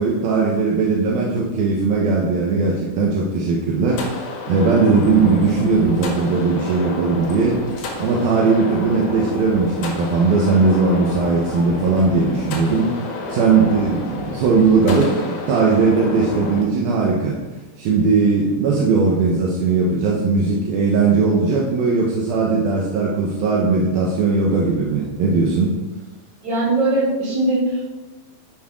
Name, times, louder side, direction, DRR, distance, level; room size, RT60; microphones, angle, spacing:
voice 1, 0.0-7.6 8.0-12.9 13.3-17.4 17.8-25.7, right 4 dB, 75° right, -3 dB, 3.0 m, -18 dB
sound 1, 3.9-16.6, left 3 dB, 75° left, 3.4 m, -30 dB
voice 2, 26.4-27.9, right 2 dB, 40° right, -5 dB, 4.6 m, -20 dB
11.0 x 10.0 x 3.8 m, 1.1 s
omnidirectional pair, 4.3 m